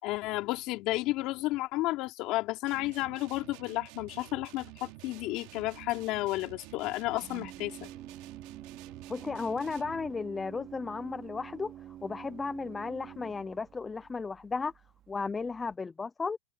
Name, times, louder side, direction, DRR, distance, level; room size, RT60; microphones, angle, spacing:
voice 1, 0.0-7.9, left 18 dB, 35° left, 3.8 m, -32 dB
sound 1, 2.7-10.2, right 21 dB, 45° right, 3.1 m, -50 dB
Organ, 5.6-15.7, right 11 dB, 25° right, 3.8 m, -49 dB
voice 2, 9.1-11.7 12.0-14.7 15.1-16.4, left 4 dB, 10° left, 0.5 m, -34 dB
supercardioid pair, 165°, 0 cm